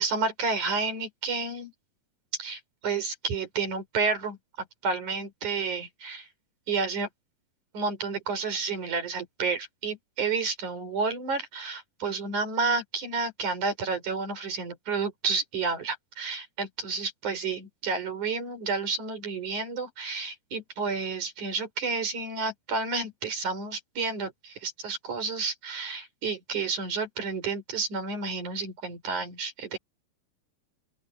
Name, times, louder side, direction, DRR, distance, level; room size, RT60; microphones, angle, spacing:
voice 1, 0.0-1.7 2.4-6.3 6.7-7.1 7.7-29.8, right 4 dB, 60° right, 6.1 m, -30 dB
open air
omnidirectional pair, 4.0 m